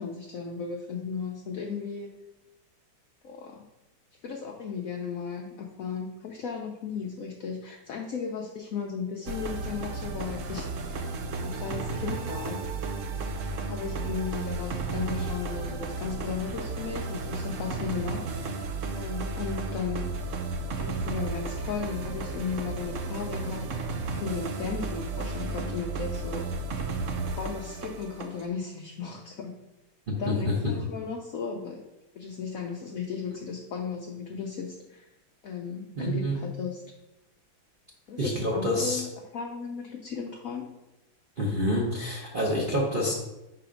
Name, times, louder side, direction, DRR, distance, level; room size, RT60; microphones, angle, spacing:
voice 1, 0.0-2.1 3.2-3.6 4.2-11.0 11.4-12.7 13.6-18.6 18.9-20.1 20.8-26.5 27.2-29.5 30.2-31.8 32.1-35.1 35.4-36.8 38.1-40.7, left 6 dB, 75° left, 1 dB, 0.7 m, -35 dB
sound 1, 9.3-28.5, right 3 dB, 90° right, 0.6 m, -33 dB
voice 2, 30.1-30.8 36.0-36.4 38.2-39.0 41.4-43.1, left 1 dB, 40° right, -3 dB, 0.8 m, -27 dB
5.8 x 4.1 x 5.0 m, 0.94 s
omnidirectional pair, 2.2 m